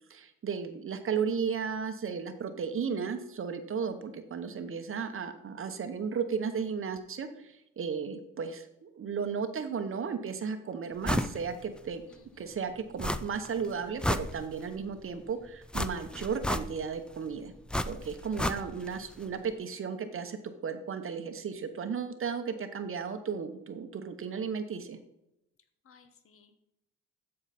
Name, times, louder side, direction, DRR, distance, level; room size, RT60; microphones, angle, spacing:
voice 1, 0.1-12.0 12.4-17.5 17.8-25.0, right 6 dB, 45° right, 8 dB, 0.9 m, -34 dB
sound 1, 11.0-11.4 11.8-11.9 13.0-13.5 13.8-14.8 15.7-17.0 17.7-19.0 19.2-19.3, left 1 dB, 5° left, 0.3 m, -32 dB
voice 2, 12.1-12.5 25.8-26.6, left 6 dB, 45° left, 9 dB, 1.1 m, -60 dB
13.0 x 4.9 x 4.1 m, 0.84 s
cardioid pair, 90°, 30 cm